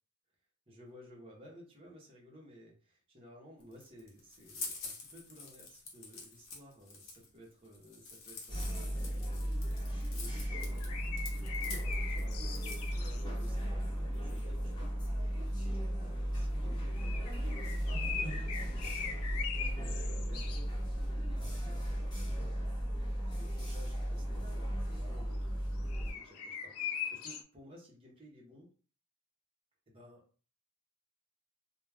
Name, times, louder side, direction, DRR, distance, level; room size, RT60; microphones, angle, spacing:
voice 1, 0.7-11.4 11.7-28.7 29.9-30.2, equal, 25° right, -3 dB, 0.8 m, -56 dB
sound 1, 3.6-13.0, left 4 dB, 65° left, 0.8 m, -47 dB
sound 2, 8.5-26.1, equal, 20° left, 0.9 m, -35 dB
sound 3, 10.5-27.4, left 7 dB, 90° left, 0.4 m, -44 dB
2.3 x 2.2 x 3.3 m, 0.38 s
head